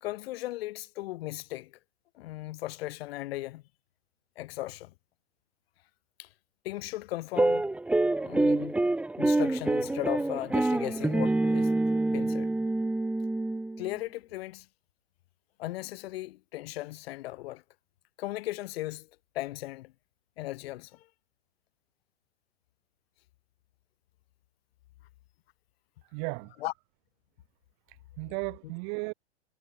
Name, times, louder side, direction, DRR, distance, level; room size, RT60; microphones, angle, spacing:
voice 1, 0.0-1.7 2.1-3.6 4.4-4.9 6.2-6.3 6.6-7.7 8.2-8.8 9.2-11.7 12.1-12.5 13.8-14.7 15.6-17.6 18.2-19.1 19.3-19.9 20.4-21.1 26.6-26.7, left 17 dB, 55° left, 3.2 m, -37 dB
sound 1, 7.4-13.9, right 2 dB, 5° right, 0.8 m, -27 dB
voice 2, 26.1-26.6 27.9-29.1, right 40 dB or more, 45° right, 2.6 m, -35 dB
hypercardioid pair, 120°, 35 cm